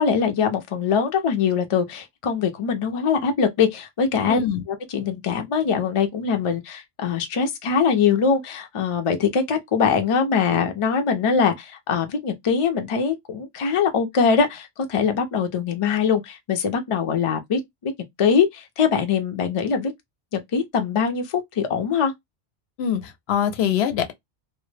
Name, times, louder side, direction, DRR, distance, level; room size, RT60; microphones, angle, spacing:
voice 1, 0.0-4.4 4.7-17.9 18.2-19.9 20.3-22.1, left 6 dB, 45° left, 0.4 m, -22 dB
voice 2, 4.3-4.6 22.8-24.1, left 9 dB, 80° left, 0.8 m, -23 dB
2.1 x 2.0 x 3.1 m
omnidirectional pair, 1.1 m